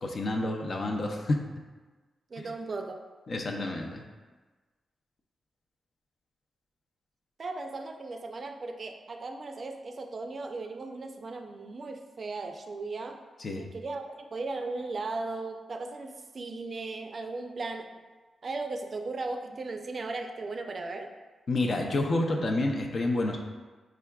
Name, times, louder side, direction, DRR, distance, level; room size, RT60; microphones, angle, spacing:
voice 1, 0.0-1.4 2.4-2.5 3.3-4.0 13.4-13.6 21.5-23.4, left 2 dB, 55° left, 2 dB, 0.5 m, -29 dB
voice 2, 2.3-3.0 7.4-13.2 13.6-17.9 18.4-21.1, right 3 dB, 50° right, 5 dB, 0.4 m, -37 dB
4.8 x 3.4 x 2.3 m, 1.3 s
cardioid pair, 60°, 0 cm